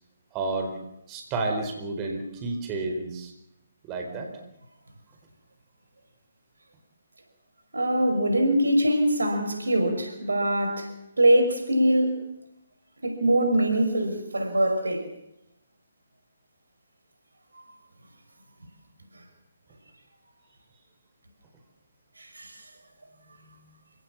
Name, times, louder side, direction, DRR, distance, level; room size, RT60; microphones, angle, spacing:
voice 1, 0.3-0.7 1.1-3.3 3.9-4.3, right 3 dB, 20° right, 4.6 m, -30 dB
voice 2, 7.7-10.9 11.2-12.2 13.0-15.1 22.2-22.5, right 1 dB, 75° right, 5.6 m, -23 dB
28.5 x 18.0 x 7.4 m
figure-of-eight pair, 140°, 0 cm